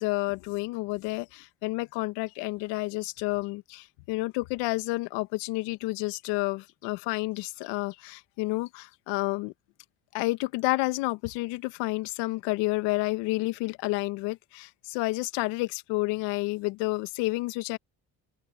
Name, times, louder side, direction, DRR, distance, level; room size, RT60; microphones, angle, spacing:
voice 1, 0.0-9.5 10.1-17.8, left 22 dB, 85° left, 1.5 m, -30 dB
hypercardioid pair, 55°, 41 cm